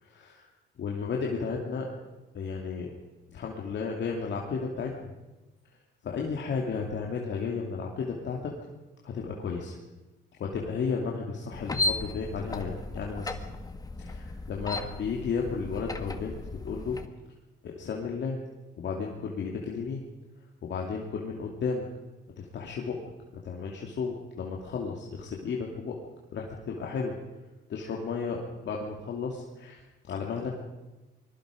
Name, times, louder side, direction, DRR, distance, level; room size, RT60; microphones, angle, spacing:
voice 1, 0.0-0.5 0.8-1.9 2.3-2.9 3.3-5.1 6.0-8.5 9.0-9.8 10.4-13.4 14.0-16.4 16.6-17.0 17.6-18.4 18.8-20.0 20.6-21.8 22.4-23.0 23.4-26.0 26.3-27.2 27.7-30.6, left 5 dB, 65° left, -1 dB, 2.7 m, -33 dB
sound 1, 11.5-17.1, left 2 dB, 20° left, 1.7 m, -35 dB
25.0 x 21.0 x 5.2 m, 1.1 s
cardioid pair, 90°, 20 cm